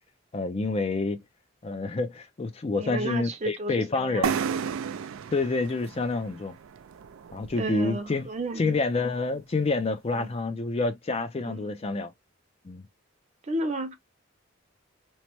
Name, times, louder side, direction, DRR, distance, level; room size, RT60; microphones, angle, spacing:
voice 1, 0.3-1.2 1.6-4.4 5.3-6.5 7.3-8.3 8.6-12.1 12.6-12.9, left 3 dB, 30° left, 0.4 m, -28 dB
voice 2, 2.8-4.2 7.6-8.8 10.1-10.3 11.5-11.7 13.4-13.9, right 1 dB, 35° right, 0.6 m, -32 dB
sound 1, 4.2-7.9, right 7 dB, 85° right, 0.4 m, -32 dB
3.0 x 2.1 x 2.9 m
head